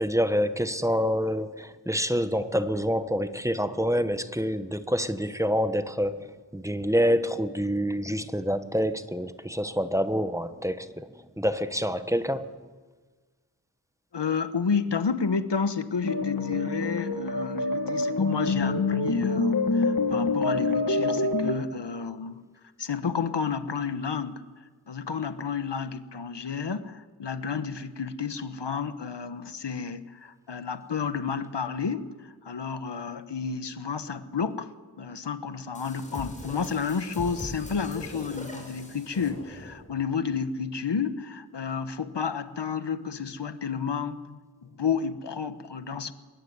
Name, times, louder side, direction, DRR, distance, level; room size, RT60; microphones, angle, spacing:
voice 1, 0.0-12.5, equal, 5° right, 10 dB, 1.3 m, -27 dB
voice 2, 14.1-22.4 22.8-24.4 24.9-46.1, left 6 dB, 80° left, 11 dB, 1.4 m, -31 dB
sound 1, 16.0-21.5, left 3 dB, 55° left, 2.4 m, -26 dB
sound 2, 35.7-39.9, left 1 dB, 15° left, 6.4 m, -41 dB
23.5 x 22.0 x 9.6 m, 1.4 s
wide cardioid pair, 80°, 41 cm